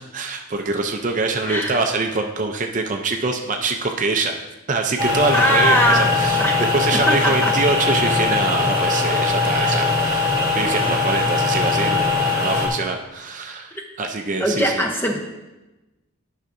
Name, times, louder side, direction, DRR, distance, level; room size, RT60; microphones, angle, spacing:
voice 1, 0.0-4.4 4.7-14.8, right 3 dB, 35° right, 4 dB, 0.4 m, -24 dB
sound 1, 5.0-12.7, left 3 dB, 15° right, 1.4 m, -20 dB
voice 2, 5.3-6.6 7.1-7.5 14.4-15.2, equal, 10° left, 2 dB, 0.6 m, -20 dB
11.0 x 5.8 x 2.6 m, 1.1 s
head